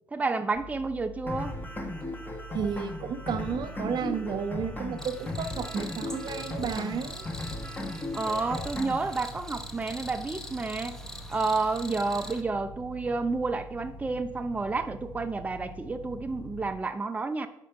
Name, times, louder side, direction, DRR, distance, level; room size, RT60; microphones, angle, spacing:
voice 1, 0.1-1.6 8.1-11.0 11.3-17.5, right 3 dB, 20° right, 8 dB, 0.5 m, -30 dB
sound 1, 0.5-16.7, right 1 dB, 70° left, 1.0 m, -45 dB
sound 2, 1.3-9.3, left 2 dB, 20° left, 1.2 m, -37 dB
voice 2, 2.5-7.2, right 6 dB, 60° right, 9 dB, 0.6 m, -32 dB
Cricket, 5.0-12.4, left 1 dB, 5° left, 0.8 m, -44 dB
5.1 x 4.5 x 5.2 m, 0.83 s
supercardioid pair, 65°, 8 cm